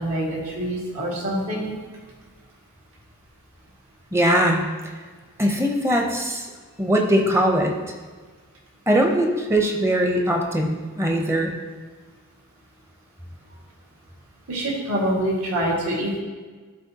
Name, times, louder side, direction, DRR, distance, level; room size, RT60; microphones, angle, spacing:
voice 1, 0.0-1.7 14.5-16.2, right 1 dB, 70° right, -3 dB, 1.8 m, -25 dB
voice 2, 4.1-4.6 5.4-6.4 6.8-7.7 8.9-11.5, equal, 10° right, 2 dB, 0.6 m, -21 dB
12.0 x 4.1 x 2.8 m, 1.4 s
head